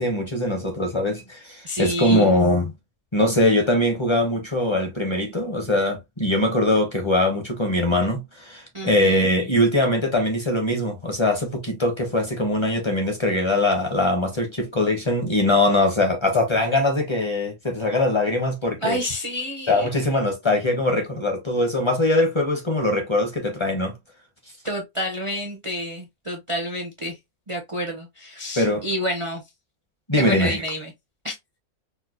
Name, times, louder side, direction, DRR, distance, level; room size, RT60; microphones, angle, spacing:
voice 1, 0.0-2.7 3.1-19.0 19.7-23.9 28.6-28.8 30.1-30.6, left 1 dB, 30° left, 0.6 m, -22 dB
voice 2, 1.6-2.4 8.7-9.3 18.8-19.9 24.6-27.2 27.5-29.4 30.2-30.9 31.2-31.3, equal, 45° right, 0.4 m, -29 dB
4.3 x 2.2 x 2.4 m
omnidirectional pair, 1.5 m